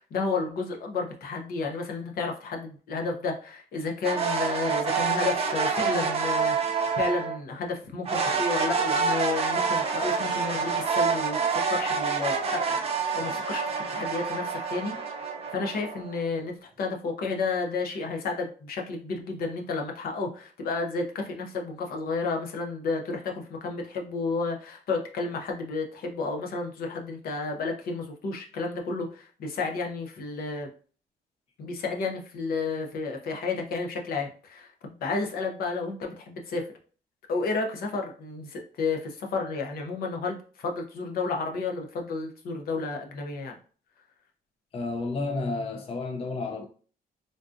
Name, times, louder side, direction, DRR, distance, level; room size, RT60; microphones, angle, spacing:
voice 1, 0.0-30.7 31.6-36.7 37.3-43.6, left 4 dB, 75° left, 0.7 m, -32 dB
sound 1, 4.0-7.4 8.1-16.2, right 5 dB, 40° right, 0.6 m, -27 dB
voice 2, 44.7-46.7, left 3 dB, 40° left, 0.4 m, -31 dB
3.8 x 2.4 x 2.5 m
cardioid pair, 110°, 16 cm